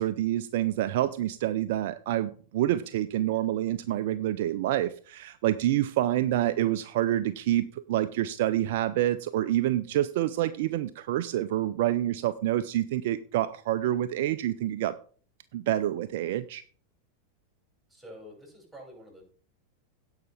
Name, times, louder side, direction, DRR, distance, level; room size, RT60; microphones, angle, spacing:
voice 1, 0.0-15.0 15.5-16.6, right 13 dB, 50° right, 12 dB, 0.4 m, -27 dB
voice 2, 17.9-19.2, equal, 5° right, 0 dB, 5.9 m, -48 dB
17.0 x 5.6 x 3.6 m, 0.43 s
figure-of-eight pair, 90°, 0 cm